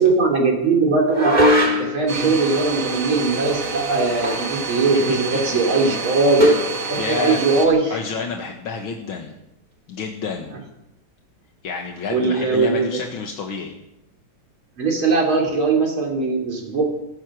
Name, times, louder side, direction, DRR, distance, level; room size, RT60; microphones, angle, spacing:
voice 1, 0.0-6.5 6.9-8.0 12.1-13.0 14.8-16.8, right 3 dB, 80° right, 0 dB, 4.2 m, -20 dB
sound 1, 1.1-2.1 4.2-4.6 4.9-5.0 6.4-6.7, equal, 20° right, 3.0 m, -18 dB
Domestic sounds home sounds, 2.1-7.7, right 5 dB, 40° right, 2.3 m, -28 dB
voice 2, 4.9-5.6 5.9-6.0 7.0-9.3 9.9-10.5 11.6-13.7, left 5 dB, 80° left, 2 dB, 2.3 m, -30 dB
16.5 x 14.0 x 6.3 m, 0.86 s
omnidirectional pair, 2.2 m